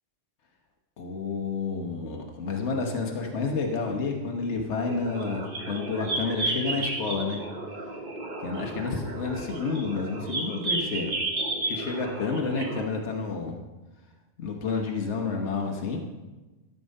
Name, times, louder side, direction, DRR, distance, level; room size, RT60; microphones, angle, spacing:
voice 1, 1.0-7.4 8.4-11.1 11.7-13.5 14.4-16.0, left 4 dB, 65° left, 2 dB, 1.4 m, -30 dB
sound 1, 4.9-12.8, right 2 dB, 40° right, 1.3 m, -32 dB
13.5 x 6.9 x 5.3 m, 1.1 s
omnidirectional pair, 1.3 m